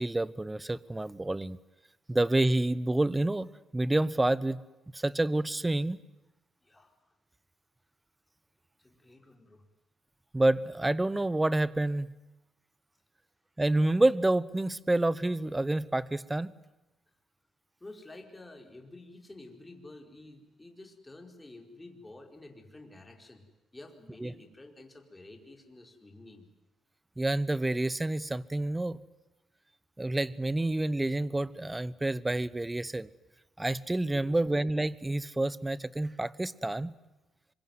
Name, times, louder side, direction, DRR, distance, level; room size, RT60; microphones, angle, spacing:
voice 1, 0.0-1.6 2.1-3.5 3.7-4.6 4.9-6.0 10.3-12.1 13.6-16.5 24.2-24.3 27.2-29.0 30.0-33.1 33.6-36.9, right 2 dB, 15° right, 18 dB, 0.9 m, -28 dB
voice 2, 6.6-6.9 8.8-9.6 17.8-23.4 23.7-26.5 34.1-34.4, left 2 dB, 15° left, 3 dB, 4.7 m, -50 dB
25.5 x 23.5 x 9.6 m, 0.98 s
cardioid pair, 90°, 0 cm